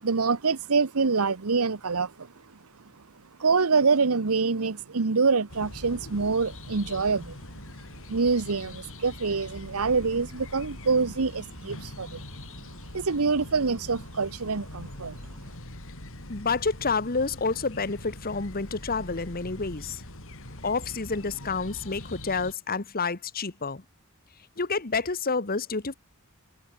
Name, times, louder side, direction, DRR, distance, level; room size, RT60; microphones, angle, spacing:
voice 1, 0.0-2.3 3.4-7.4 8.1-12.2 12.9-15.3, right 4 dB, 70° right, 1.0 m, -25 dB
sound 1, 5.5-22.5, left 1 dB, 65° left, 6.3 m, -42 dB
voice 2, 16.3-20.0 20.6-23.8 24.6-25.9, left 4 dB, 40° left, 1.5 m, -29 dB
head